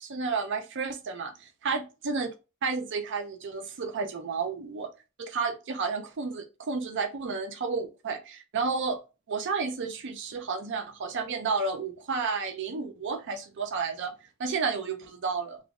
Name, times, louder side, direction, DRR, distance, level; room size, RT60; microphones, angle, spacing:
voice 1, 0.0-2.3 2.6-4.9 5.2-9.0 9.3-14.1 14.4-15.6, right 4 dB, 60° right, 6 dB, 0.5 m, -31 dB
3.0 x 2.5 x 3.4 m, 0.29 s
head